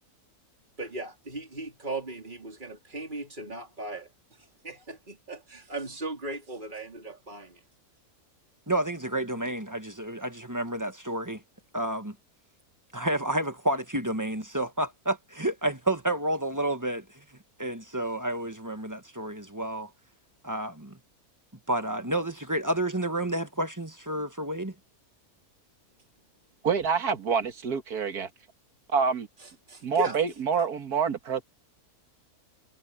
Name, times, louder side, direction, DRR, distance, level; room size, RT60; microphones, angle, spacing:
voice 1, 0.8-7.6 29.4-30.2, right 1 dB, 30° right, 4.0 m, -38 dB
voice 2, 8.7-11.4 11.7-12.1 12.9-17.2 17.6-19.9 20.4-21.0 21.7-24.7, right 1 dB, 15° right, 1.4 m, -30 dB
voice 3, 26.6-28.3 28.9-29.3 29.8-31.4, right 6 dB, 90° right, 2.1 m, -27 dB
omnidirectional pair, 1.6 m